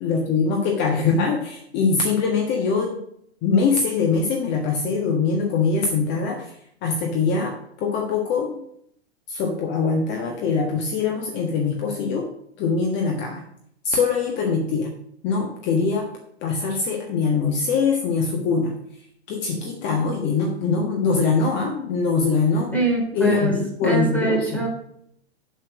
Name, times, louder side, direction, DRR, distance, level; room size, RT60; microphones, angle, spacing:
voice 1, 0.0-3.0 3.4-6.6 6.8-8.6 9.3-12.3 12.6-13.4 13.8-14.9 15.2-16.1 16.4-18.7 19.3-22.8 23.1-24.6, left 4 dB, 35° left, 2 dB, 1.5 m, -23 dB
voice 2, 22.7-24.7, right 3 dB, 5° left, -2 dB, 3.4 m, -23 dB
7.6 x 7.3 x 6.1 m, 0.70 s
figure-of-eight pair, 110°, 33 cm